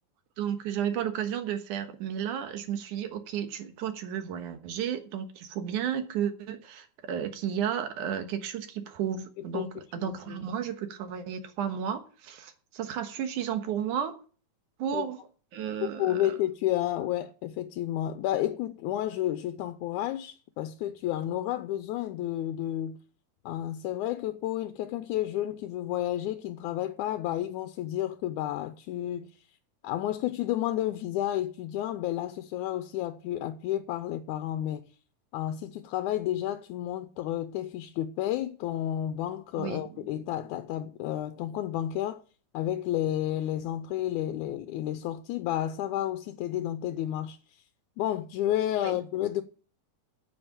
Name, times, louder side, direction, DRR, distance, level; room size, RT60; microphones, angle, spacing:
voice 1, 0.4-14.2 14.8-15.2 15.5-16.3 39.6-40.0 48.8-49.0, right 9 dB, 75° right, 2.7 m, -33 dB
voice 2, 10.0-10.4 14.9-15.1 15.8-23.0 23.5-29.3 29.8-34.9 35.3-42.2 42.5-47.6 48.0-49.4, left 12 dB, 80° left, 2.1 m, -31 dB
8.9 x 7.6 x 8.8 m
omnidirectional pair, 3.6 m